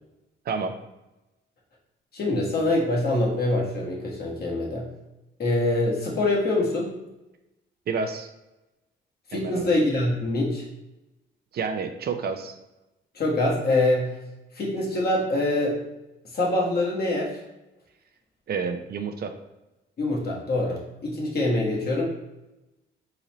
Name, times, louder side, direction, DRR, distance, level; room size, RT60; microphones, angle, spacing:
voice 1, 0.5-0.8 7.9-8.3 9.3-9.7 11.5-12.6 18.5-19.3, right 5 dB, 50° right, 6 dB, 0.5 m, -29 dB
voice 2, 2.1-4.9 5.4-6.9 9.3-10.6 13.1-14.1 14.5-15.8 16.3-17.3 20.0-22.1, left 2 dB, 50° left, -3 dB, 1.3 m, -24 dB
4.0 x 3.9 x 3.0 m, 0.98 s
cardioid pair, 90°, 20 cm